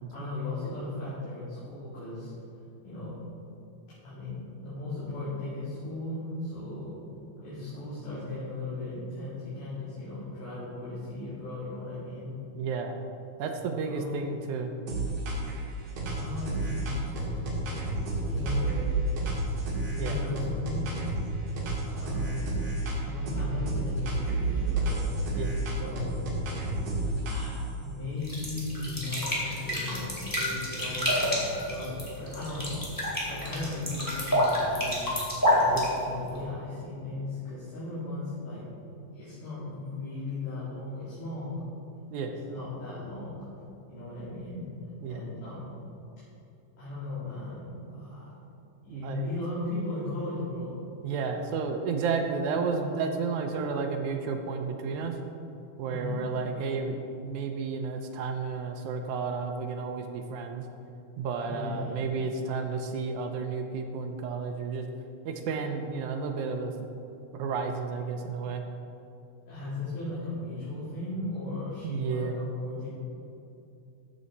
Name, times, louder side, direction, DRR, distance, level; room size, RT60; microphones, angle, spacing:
voice 1, 0.1-2.3 2.8-3.2 4.0-7.0 7.4-12.3 13.8-14.2 16.1-17.8 18.3-18.8 20.0-20.8 21.9-22.5 23.0-25.0 25.8-26.1 27.3-35.2 35.5-35.7 36.0-38.6 39.1-41.6 42.2-43.4 43.9-44.6 45.1-45.7 46.8-48.3 48.8-50.7 55.9-56.2 61.4-62.0 68.2-68.3 69.5-72.9, left 2 dB, 75° left, -12 dB, 4.6 m, -37 dB
voice 2, 12.6-12.9 13.4-14.7 20.0-20.2 25.4-25.6 35.7-35.9 42.1-42.3 45.0-45.2 48.9-49.3 51.0-55.2 55.8-60.7 61.2-64.9 65.3-66.7 67.3-68.6 71.8-72.4, right 5 dB, 80° right, 4 dB, 2.0 m, -32 dB
sound 1, 14.9-15.6 16.0-21.2 21.6-23.0 23.3-27.7, right 2 dB, 55° right, 2.9 m, -30 dB
sound 2, 28.2-36.4, equal, 5° left, 2.2 m, -29 dB
14.5 x 7.6 x 4.2 m, 2.7 s
omnidirectional pair, 3.7 m